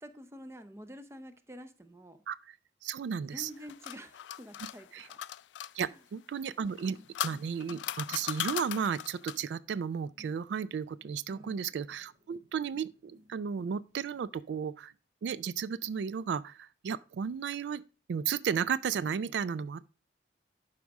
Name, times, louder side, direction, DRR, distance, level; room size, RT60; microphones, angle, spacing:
voice 1, 0.0-2.2 3.1-5.2 5.9-6.0 11.3-11.6, equal, 15° right, 0.6 m, -48 dB
voice 2, 2.8-3.5 4.9-5.1 5.7-7.0 7.2-14.9 15.2-17.8 18.1-19.9, right 7 dB, 80° right, 0.3 m, -34 dB
sound 1, 3.4-5.7 6.7-9.5, left 11 dB, 85° left, 0.3 m, -38 dB
sound 2, 6.8-14.5, left 1 dB, 45° right, 1.7 m, -62 dB
11.0 x 4.9 x 3.5 m
head